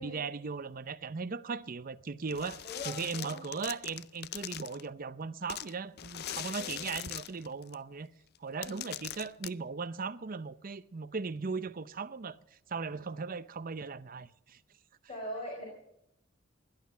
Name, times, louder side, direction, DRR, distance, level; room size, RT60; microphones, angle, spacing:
voice 1, 0.0-8.1 8.4-14.6, right 4 dB, 45° right, 0.6 m, -38 dB
sound 1, 2.3-4.9 5.5-7.7 8.4-8.5 8.6-9.5, left 12 dB, 50° left, 0.4 m, -41 dB
voice 2, 2.6-3.4 6.6-6.7 8.6-8.8 15.1-15.7, equal, 30° left, 4.7 m, -41 dB
17.5 x 11.5 x 5.5 m
head